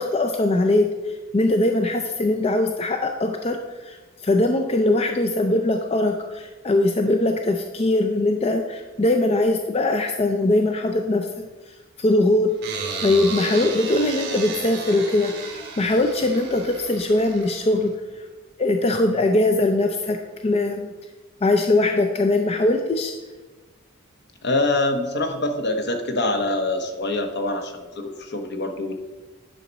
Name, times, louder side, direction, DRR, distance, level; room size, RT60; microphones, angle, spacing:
voice 1, 0.0-3.6 3.8-12.5 13.0-18.3 18.6-20.9 21.4-23.1, left 2 dB, 30° left, 5 dB, 0.5 m, -21 dB
sound 1, 12.6-17.9, right 4 dB, 55° right, 2.7 m, -33 dB
voice 2, 24.4-28.9, left 2 dB, 55° left, 6 dB, 1.0 m, -25 dB
10.5 x 5.8 x 4.0 m, 1.3 s
head